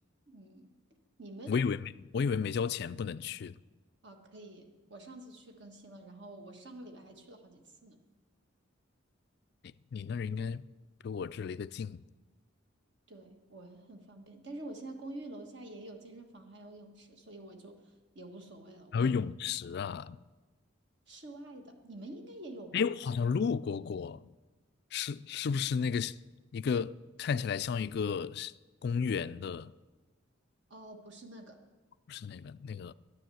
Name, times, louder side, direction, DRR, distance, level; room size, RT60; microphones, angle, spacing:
voice 1, 0.3-0.7 1.2-1.6 4.0-8.0 13.1-19.1 21.1-22.9 30.7-31.6, right 1 dB, 60° right, 1.6 m, -48 dB
voice 2, 1.5-3.5 9.6-10.6 11.0-12.0 18.9-20.2 22.7-24.3 24.9-26.2 26.5-28.5 28.8-29.7 32.1-32.9, left 6 dB, 55° left, 0.3 m, -33 dB
11.5 x 10.0 x 7.8 m
head